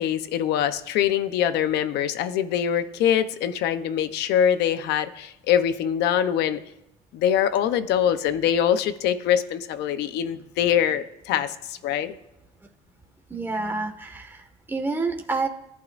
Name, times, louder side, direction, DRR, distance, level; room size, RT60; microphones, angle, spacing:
voice 1, 0.0-6.6 7.1-12.1, left 9 dB, 85° left, 10 dB, 0.8 m, -23 dB
voice 2, 13.3-15.5, right 3 dB, 10° right, 3 dB, 1.7 m, -28 dB
26.5 x 12.0 x 2.6 m, 0.87 s
cardioid pair, 110°, 17 cm